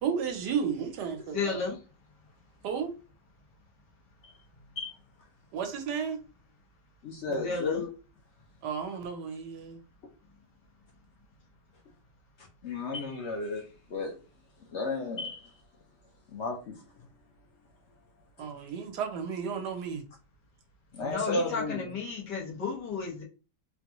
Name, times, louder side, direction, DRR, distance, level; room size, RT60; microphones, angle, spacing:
voice 1, 0.0-1.6 2.6-2.9 5.5-6.2 8.6-9.8 18.4-20.0, right 7 dB, 80° right, 1.3 m, -33 dB
voice 2, 1.3-1.8 7.3-7.8 21.0-23.2, left 5 dB, 90° left, 1.8 m, -33 dB
voice 3, 7.0-7.9 12.4-14.2 14.7-15.5 16.3-17.1 20.9-21.9, left 2 dB, 60° left, 0.7 m, -34 dB
4.1 x 2.2 x 2.9 m
omnidirectional pair, 1.8 m